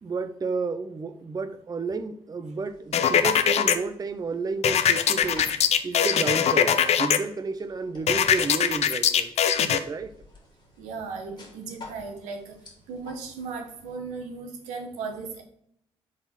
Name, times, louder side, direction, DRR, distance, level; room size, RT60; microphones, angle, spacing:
voice 1, 0.0-5.5 5.8-9.3 9.6-10.1, right 4 dB, 30° right, 0.5 m, -31 dB
sound 1, 2.7-14.0, left 2 dB, 40° left, 2.2 m, -46 dB
sound 2, 2.9-3.8 4.6-7.2 8.1-9.8, left 8 dB, 60° left, 0.5 m, -21 dB
voice 2, 10.8-12.5 12.9-15.4, right 4 dB, 85° right, 1.0 m, -36 dB
4.7 x 3.8 x 5.6 m
hypercardioid pair, 50°, 12 cm